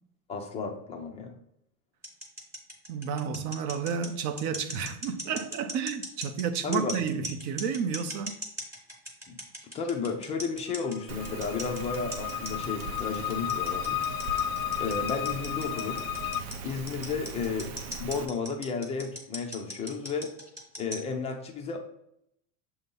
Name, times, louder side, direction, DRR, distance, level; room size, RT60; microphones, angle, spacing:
voice 1, 0.3-1.3 6.6-6.9 9.3-9.4 9.7-14.0 14.8-16.0 16.6-17.7 18.0-20.3 20.8-21.8, left 5 dB, 15° left, 0.4 m, -33 dB
sound 1, 2.0-21.1, equal, 5° right, 1.1 m, -39 dB
voice 2, 2.9-8.4, right 7 dB, 40° right, 0.6 m, -31 dB
sound 2, 10.7-16.4, left 12 dB, 80° left, 0.5 m, -33 dB
Rain, 11.1-18.3, right 4 dB, 90° right, 0.9 m, -40 dB
6.9 x 2.7 x 5.3 m
supercardioid pair, 155°, 42 cm